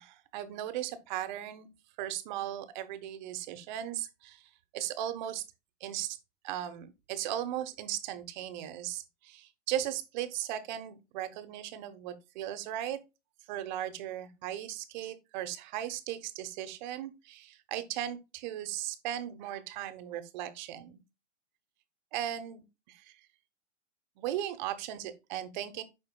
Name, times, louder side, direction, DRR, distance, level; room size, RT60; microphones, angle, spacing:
voice 1, 0.0-1.7 2.0-5.4 5.8-6.2 6.4-13.0 13.5-21.0 22.1-23.2 24.2-25.8, right 12 dB, 40° right, 1.0 m, -37 dB
9.8 x 4.4 x 2.2 m
hypercardioid pair, 125°, 36 cm